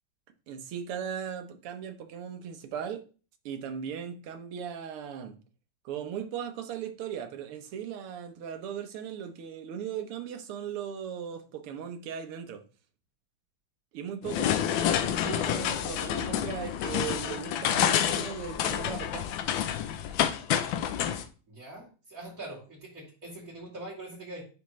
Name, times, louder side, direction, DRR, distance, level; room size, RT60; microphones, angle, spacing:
voice 1, 0.5-3.0 3.4-5.4 5.8-12.6 13.9-19.3, right 8 dB, 80° right, 1.8 m, -38 dB
sound 1, 14.2-21.2, left 10 dB, 75° left, 1.3 m, -28 dB
voice 2, 21.5-24.5, right 2 dB, 40° right, 2.9 m, -43 dB
9.9 x 3.5 x 3.1 m
omnidirectional pair, 2.4 m